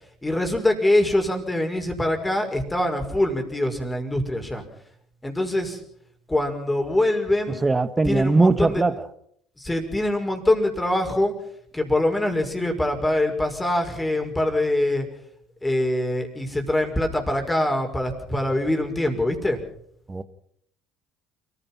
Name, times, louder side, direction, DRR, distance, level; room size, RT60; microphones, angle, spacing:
voice 1, 0.2-4.6 5.2-5.8 6.3-7.7 8.1-8.8 9.6-11.3 11.7-15.1 15.6-19.6, left 1 dB, 15° left, 5.9 m, -24 dB
voice 2, 7.5-8.9 20.1-20.2, right 3 dB, 20° right, 1.7 m, -20 dB
28.5 x 16.0 x 5.8 m
hypercardioid pair, 60°, 0 cm